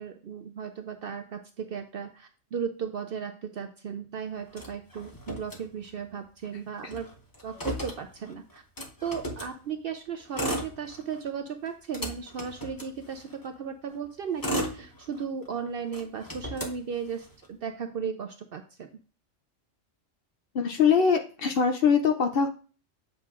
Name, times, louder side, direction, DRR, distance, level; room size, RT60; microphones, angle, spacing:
voice 1, 0.0-7.1 7.4-8.6 9.0-18.9, right 7 dB, 65° right, 7 dB, 0.6 m, -36 dB
Motor vehicle (road), 4.5-6.1 6.4-6.5 6.8-9.6 10.2-11.3 11.7-13.5 14.1-15.5 15.9-17.5, equal, 20° left, 0.7 m, -36 dB
voice 2, 20.5-22.5, left 6 dB, 60° left, 6 dB, 0.7 m, -22 dB
7.9 x 5.6 x 2.4 m, 0.38 s
omnidirectional pair, 1.3 m